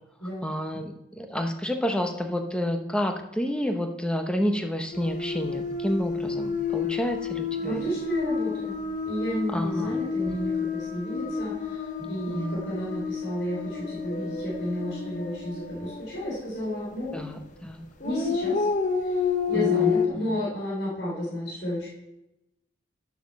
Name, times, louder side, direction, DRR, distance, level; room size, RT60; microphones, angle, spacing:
voice 1, 0.4-7.8 9.5-10.0 10.3-10.4 10.8-11.0 12.0-12.6 17.1-17.8 19.5-19.9, equal, 5° left, 4 dB, 0.9 m, -30 dB
sound 1, 4.9-16.9 18.0-20.1, left 5 dB, 40° left, 1.0 m, -30 dB
voice 2, 7.6-8.7 9.0-17.2 18.0-18.7 19.0-21.9, equal, 65° left, -5 dB, 3.5 m, -32 dB
8.8 x 7.3 x 6.5 m, 0.90 s
head